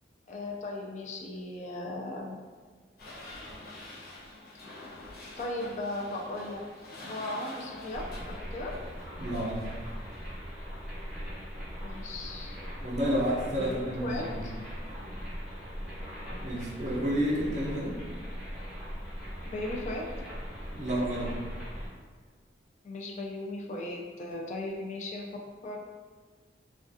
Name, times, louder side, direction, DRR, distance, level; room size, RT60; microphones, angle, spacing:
voice 1, 0.3-2.4 5.4-6.6 7.0-8.7 11.8-12.5 13.6-14.5 19.4-20.0 22.8-25.3 25.6-25.8, left 1 dB, 40° left, -1 dB, 0.4 m, -37 dB
sound 1, 3.0-10.3, left 2 dB, 55° left, 0.8 m, -47 dB
sound 2, 7.9-21.9, equal, 5° right, 0.8 m, -40 dB
voice 2, 9.2-9.7 12.8-14.6 16.3-17.9 20.7-21.3, equal, 40° right, -4 dB, 0.5 m, -30 dB
2.3 x 2.3 x 2.6 m, 1.5 s
head